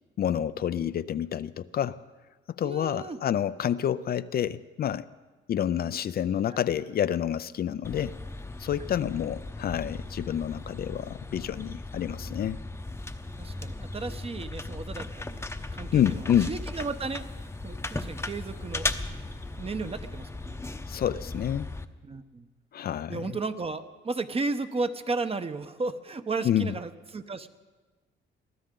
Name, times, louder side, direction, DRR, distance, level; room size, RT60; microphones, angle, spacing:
voice 1, 0.2-2.0 2.6-5.1 5.5-8.2 8.6-12.6 15.9-16.5 20.9-21.7 22.7-23.2 26.4-26.7, left 10 dB, 50° left, 14 dB, 0.4 m, -28 dB
voice 2, 2.6-3.2 6.5-6.6 8.8-8.9 13.4-15.5 15.7-17.2 17.6-18.9 19.6-20.6 22.0-22.5 23.1-27.5, right 3 dB, 30° right, 9 dB, 0.9 m, -34 dB
sound 1, 7.8-21.9, left 2 dB, 15° left, 0.8 m, -37 dB
23.5 x 15.0 x 3.8 m, 1.3 s
cardioid pair, 90°, 20 cm